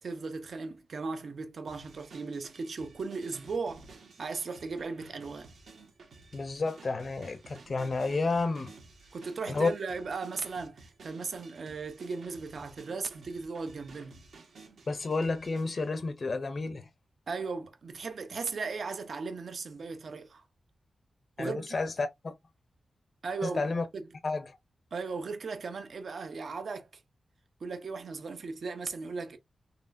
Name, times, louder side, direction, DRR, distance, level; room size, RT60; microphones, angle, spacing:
voice 1, 0.0-3.9 4.2-5.5 9.1-14.2 17.3-20.4 21.4-21.8 23.2-23.6 23.9-24.1 24.9-27.0 27.6-29.4, right 4 dB, 65° right, 0.8 m, -37 dB
sound 1, 1.7-15.9, right 3 dB, 85° right, 1.4 m, -54 dB
voice 2, 6.3-8.7 9.5-9.7 14.9-16.9 21.4-22.3 23.4-23.8 24.2-24.6, left 3 dB, 45° left, 0.5 m, -31 dB
4.2 x 3.2 x 2.6 m
wide cardioid pair, 105°, 0 cm